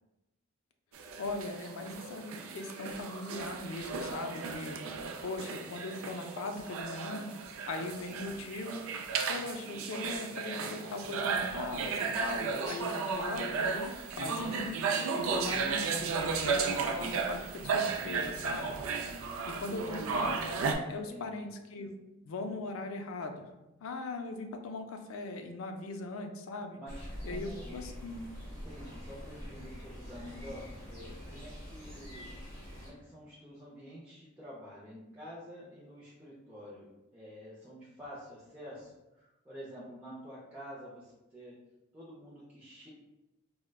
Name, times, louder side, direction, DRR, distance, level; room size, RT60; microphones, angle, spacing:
sound 1, 0.9-20.7, right 5 dB, 75° right, 0.4 m, -34 dB
voice 1, 1.2-4.8 5.2-7.3 7.7-8.9 9.3-13.9 14.2-18.8 19.4-20.5 20.9-21.9 22.2-23.4 23.8-26.8 27.2-28.3, left 2 dB, 70° left, 5 dB, 0.4 m, -39 dB
voice 2, 21.1-21.5 26.7-27.8 28.5-32.3 32.7-41.6 41.9-42.9, equal, 10° right, -9 dB, 0.5 m, -48 dB
sound 2, 26.9-32.9, equal, 15° left, 1.3 m, -45 dB
4.5 x 2.1 x 2.2 m, 0.99 s
head